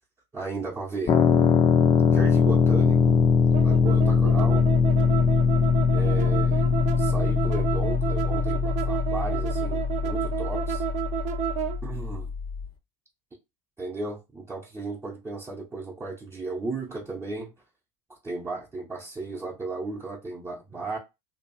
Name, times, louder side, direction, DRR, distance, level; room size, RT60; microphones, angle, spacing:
voice 1, 0.3-1.2 2.1-3.2 3.6-4.7 5.9-6.7 7.0-10.8 11.8-12.3 13.8-17.5 18.1-21.0, right 3 dB, 15° right, 0.8 m, -35 dB
sound 1, 1.1-12.7, left 5 dB, 30° left, 0.6 m, -22 dB
sound 2, 3.5-11.8, right 10 dB, 45° right, 0.6 m, -31 dB
2.7 x 2.4 x 2.7 m
hypercardioid pair, 100°, 17 cm